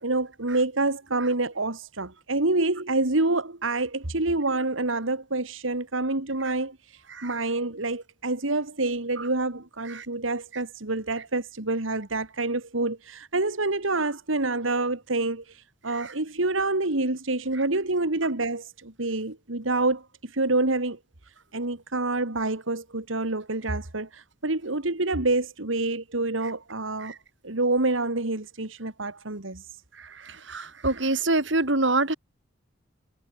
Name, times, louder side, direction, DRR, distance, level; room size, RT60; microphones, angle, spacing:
voice 1, 0.0-21.0 21.5-27.1 27.4-29.7, right 2 dB, 85° right, 2.4 m, -27 dB
voice 2, 30.5-32.1, right 2 dB, 70° right, 3.8 m, -24 dB
head